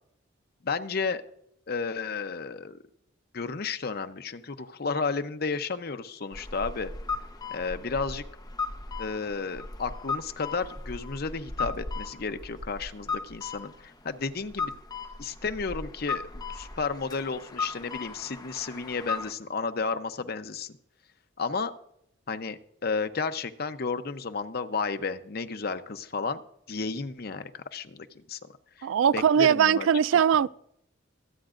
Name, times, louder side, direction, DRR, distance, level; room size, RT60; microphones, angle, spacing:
voice 1, 0.6-1.2 1.7-2.8 3.3-6.9 7.5-8.2 9.0-14.7 15.2-20.8 21.4-21.7 22.3-26.4 26.7-28.4 29.1-29.9 30.1-30.2, left 4 dB, 50° left, 0.7 m, -32 dB
sound 1, 6.3-19.3, left 4 dB, 20° left, 0.9 m, -37 dB
voice 2, 28.8-30.5, right 8 dB, 85° right, 0.3 m, -21 dB
24.5 x 8.9 x 2.5 m
head